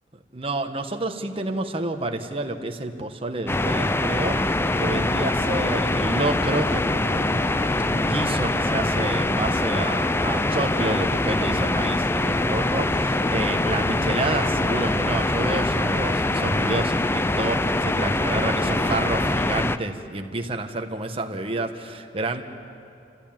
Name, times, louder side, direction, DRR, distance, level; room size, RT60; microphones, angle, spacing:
voice 1, 0.3-22.4, right 2 dB, 30° right, 5 dB, 1.3 m, -29 dB
sound 1, 3.5-19.8, left 2 dB, 15° left, 0.4 m, -23 dB
29.0 x 14.5 x 8.9 m, 2.6 s
head